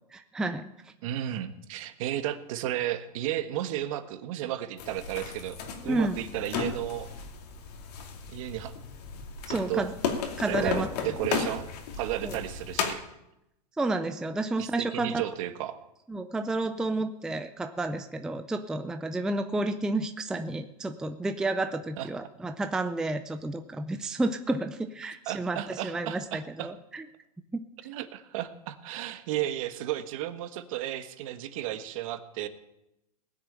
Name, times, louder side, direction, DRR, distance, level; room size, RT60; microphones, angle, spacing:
voice 1, 0.1-0.7 5.9-6.2 9.5-9.9 10.4-10.9 12.2-12.4 13.8-15.2 16.1-27.0 27.5-27.6, right 2 dB, 5° right, 8 dB, 0.4 m, -31 dB
voice 2, 1.0-7.1 8.3-8.7 9.7-9.8 10.4-11.7 12.0-13.0 14.6-15.8 22.0-22.1 25.3-26.7 27.8-32.5, right 12 dB, 55° right, 10 dB, 1.3 m, -33 dB
sound 1, 4.8-12.9, left 6 dB, 70° left, 2.6 m, -34 dB
19.0 x 6.7 x 8.7 m, 0.87 s
supercardioid pair, 145°, 21 cm